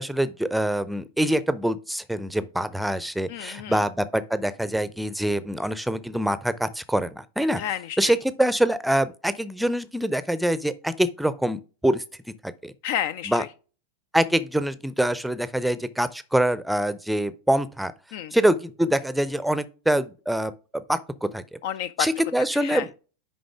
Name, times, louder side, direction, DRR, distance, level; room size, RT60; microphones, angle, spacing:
voice 1, 0.0-7.6 8.0-12.0 12.4-12.7 13.3-13.4 14.1-17.9 18.3-20.5 20.9-21.6 22.0-23.0, right 1 dB, ahead, 0.6 m, -25 dB
voice 2, 3.3-3.8 7.6-8.2 12.8-13.5 18.1-18.3 21.6-22.1 22.5-22.9, left 10 dB, 50° left, 0.4 m, -30 dB
10.0 x 3.8 x 3.5 m
figure-of-eight pair, 90°, 0 cm